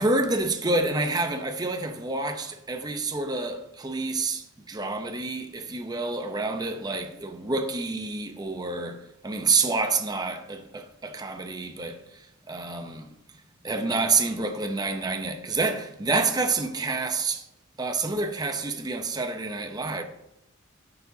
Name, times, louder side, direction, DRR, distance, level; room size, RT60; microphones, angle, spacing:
voice 1, 0.0-7.0 7.4-12.0 12.5-13.1 13.6-17.4 17.8-20.0, right 3 dB, 20° right, 0.7 m, -28 dB
12.0 x 6.9 x 2.7 m
head